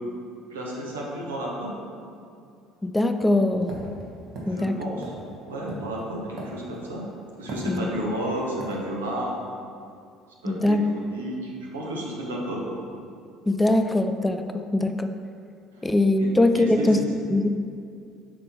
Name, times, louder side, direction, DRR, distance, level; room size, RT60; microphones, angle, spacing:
voice 1, 0.5-1.7 4.4-5.1 5.5-7.0 7.4-9.3 10.4-10.8 11.1-12.8 16.2-16.3 16.5-17.0, right 1 dB, 80° right, -2 dB, 1.0 m, -32 dB
voice 2, 2.8-3.8 4.5-4.9 7.7-7.8 10.5-10.8 13.5-15.1 15.8-17.0 17.3-17.5, left 1 dB, 10° left, 7 dB, 0.4 m, -22 dB
sound 1, 3.7-7.0 7.5-8.2 8.6-8.8, right 1 dB, 55° right, 1.3 m, -38 dB
6.2 x 4.2 x 4.2 m, 2.4 s
figure-of-eight pair, 60°, 0 cm